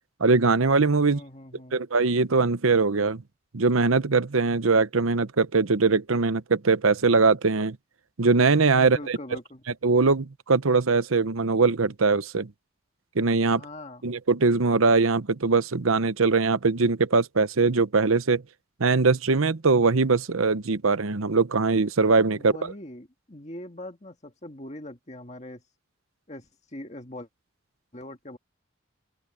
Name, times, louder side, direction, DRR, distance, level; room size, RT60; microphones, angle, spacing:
voice 1, 0.2-1.2 1.7-3.2 3.5-7.8 8.2-9.2 9.8-12.5 13.2-13.6 14.0-18.4 18.8-22.5, right 4 dB, 80° right, 0.9 m, -21 dB
voice 2, 1.0-1.8 8.8-9.6 13.5-14.0 22.3-25.6 26.3-27.3 27.9-28.4, left 1 dB, 35° left, 1.9 m, -42 dB
open air
head